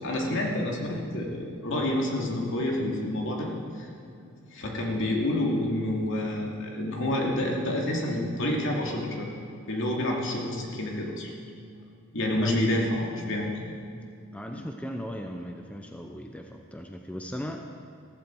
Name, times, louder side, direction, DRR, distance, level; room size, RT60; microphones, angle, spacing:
voice 1, 0.0-3.5 3.7-3.9 4.5-9.3 9.7-11.3 12.1-13.5 14.5-14.7, left 1 dB, 60° left, -1 dB, 2.5 m, -28 dB
voice 2, 14.3-17.7, equal, 5° left, 3 dB, 0.6 m, -37 dB
15.0 x 15.0 x 4.6 m, 2.4 s
head